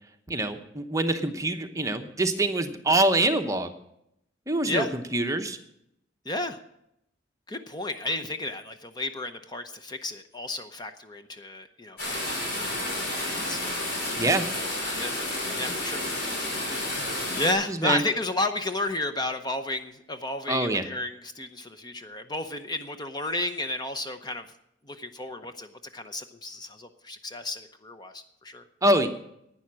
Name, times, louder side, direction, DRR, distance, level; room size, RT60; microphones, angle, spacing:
voice 1, 0.3-3.7 4.5-5.6 14.2-14.4 17.7-18.0 20.5-20.8 28.8-29.1, right 2 dB, 20° right, 6 dB, 0.9 m, -25 dB
voice 2, 6.3-6.6 7.5-12.4 12.8-12.9 13.2-13.6 14.9-15.2 15.6-16.0 17.4-24.4 24.9-25.7 25.9-28.6, left 2 dB, 25° left, 8 dB, 0.7 m, -32 dB
sound 1, 12.0-17.5, left 1 dB, 60° left, 5.3 m, -30 dB
11.5 x 9.5 x 7.5 m, 0.78 s
head